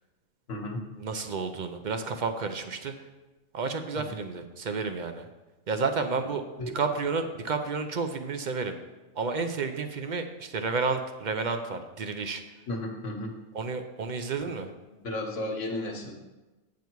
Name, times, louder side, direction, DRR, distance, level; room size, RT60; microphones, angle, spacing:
voice 1, 0.5-0.8 6.6-6.7 12.7-13.3 15.0-16.1, left 1 dB, 65° left, 2 dB, 1.6 m, -33 dB
voice 2, 1.0-3.0 3.5-5.3 5.7-6.4 6.7-8.8 9.2-12.4 13.5-14.7, right 4 dB, 50° right, 7 dB, 0.6 m, -31 dB
8.1 x 7.2 x 4.6 m, 1.1 s
omnidirectional pair, 1.4 m